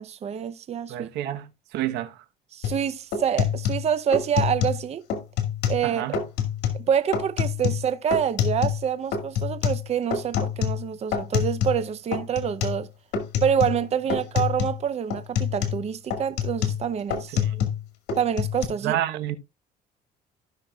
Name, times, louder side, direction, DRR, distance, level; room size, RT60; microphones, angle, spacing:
voice 1, 0.0-1.4 2.5-5.0 5.7-6.0 6.9-12.9 13.4-17.4 18.2-19.0, right 8 dB, 40° right, 0.7 m, -26 dB
voice 2, 0.9-1.5 1.7-2.2 5.8-6.2 17.3-17.7 18.8-19.4, right 13 dB, 85° right, 1.1 m, -29 dB
sound 1, 2.6-2.8 3.1-4.8 5.1-5.9 6.1-6.8 7.1-8.9 9.1-11.8 12.1-12.8 13.1-13.8 14.1-14.8 15.1-17.8 18.1-18.6, left 8 dB, 80° left, 2.1 m, -26 dB
15.5 x 5.9 x 2.3 m
cardioid pair, 110°, 17 cm